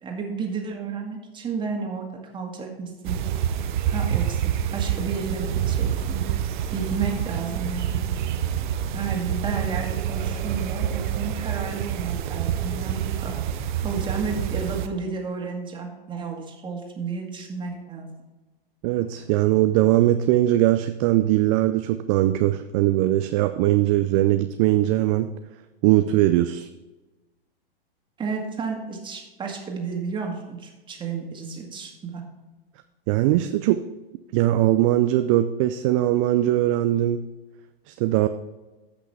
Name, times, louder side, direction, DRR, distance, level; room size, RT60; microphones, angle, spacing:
voice 1, 0.0-3.2 3.9-6.2 6.7-8.1 8.9-13.3 13.8-18.1 28.2-32.2, right 5 dB, 15° right, 1 dB, 2.1 m, -32 dB
sound 1, 3.0-14.9, right 10 dB, 55° right, 0.8 m, -27 dB
voice 2, 18.8-25.3 25.8-26.7 33.1-33.8 34.3-37.2 37.9-38.3, right 14 dB, 35° right, 9 dB, 0.5 m, -20 dB
14.0 x 6.0 x 3.4 m, 1.1 s
figure-of-eight pair, 105°, 29 cm